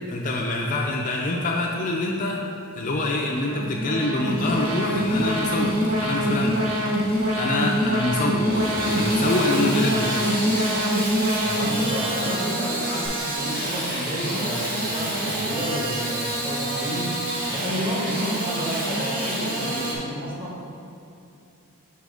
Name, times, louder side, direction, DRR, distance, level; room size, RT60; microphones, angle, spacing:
voice 1, 0.1-2.5 2.7-6.6 7.3-8.5 8.8-10.2, left 2 dB, 35° left, -1 dB, 0.4 m, -25 dB
Alarm, 3.2-13.1, equal, 80° right, 1.0 m, -25 dB
Engine starting / Sawing, 4.3-20.0, right 1 dB, 40° right, 0.9 m, -29 dB
voice 2, 11.4-17.1 17.5-20.6, equal, 25° right, -7 dB, 1.4 m, -31 dB
6.2 x 4.6 x 3.4 m, 2.7 s
head